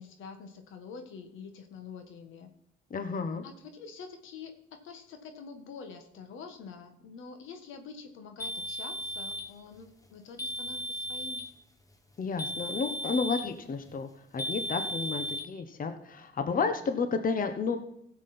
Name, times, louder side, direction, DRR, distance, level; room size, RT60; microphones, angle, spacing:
voice 1, 0.0-2.5 3.4-11.5, left 5 dB, 85° left, 7 dB, 1.5 m, -46 dB
voice 2, 2.9-3.4 12.2-17.8, left 5 dB, 45° left, 8 dB, 1.1 m, -31 dB
sound 1, 8.4-9.5 10.4-11.5 12.4-13.5 14.4-15.4, equal, 15° left, 1.3 m, -35 dB
16.0 x 7.4 x 4.3 m, 0.79 s
cardioid pair, 90°, 20 cm